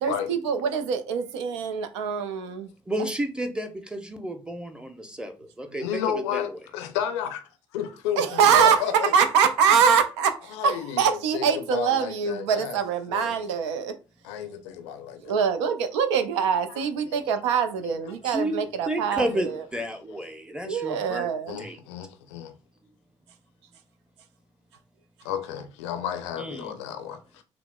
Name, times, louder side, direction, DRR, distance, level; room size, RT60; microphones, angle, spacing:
voice 1, 0.0-2.7 8.2-14.0 15.2-19.7 20.6-21.6, right 7 dB, 80° right, 0.4 m, -24 dB
voice 2, 2.9-5.3 5.6-6.0 6.3-6.4 18.2-21.3 21.6-21.8 26.4-26.8, right 1 dB, 5° right, 0.8 m, -31 dB
voice 3, 5.8-8.2 8.5-9.1 10.5-12.8 13.1-13.3 14.2-15.4 17.1-17.2 17.5-17.6 21.5-22.5 25.2-27.4, left 9 dB, 80° left, 0.5 m, -32 dB
5.8 x 2.0 x 2.2 m
hypercardioid pair, 45°, 15 cm